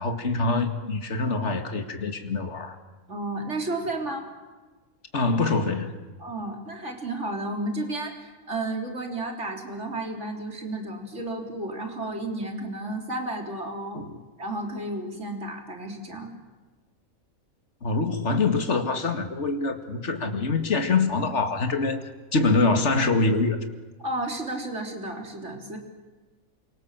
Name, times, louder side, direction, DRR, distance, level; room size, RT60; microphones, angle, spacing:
voice 1, 0.0-2.8 5.1-6.0 13.9-14.2 17.8-22.0 22.3-23.6, left 3 dB, 50° left, 6 dB, 2.4 m, -25 dB
voice 2, 3.1-4.3 6.2-14.0 14.4-16.3 24.0-25.8, right 2 dB, 55° right, 3 dB, 3.9 m, -32 dB
29.0 x 24.5 x 7.5 m, 1.3 s
omnidirectional pair, 1.5 m